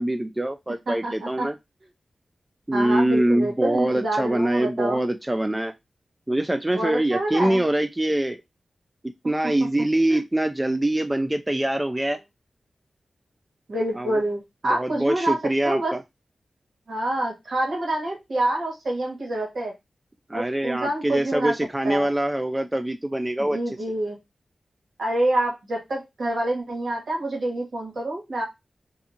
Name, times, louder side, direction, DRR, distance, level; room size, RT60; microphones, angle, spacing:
voice 1, 0.0-1.6 2.7-5.7 6.3-8.4 9.0-12.2 13.9-14.2 14.6-16.0 20.3-23.8, right 1 dB, 20° right, 8 dB, 0.3 m, -24 dB
voice 2, 0.9-1.5 2.7-5.0 6.7-7.6 9.4-10.2 13.7-15.9 16.9-19.7 20.3-21.5 21.8-22.1 23.4-24.2 25.0-28.4, right 1 dB, 70° right, 0 dB, 1.4 m, -27 dB
2.6 x 2.4 x 2.7 m, 0.20 s
cardioid pair, 60°, 0 cm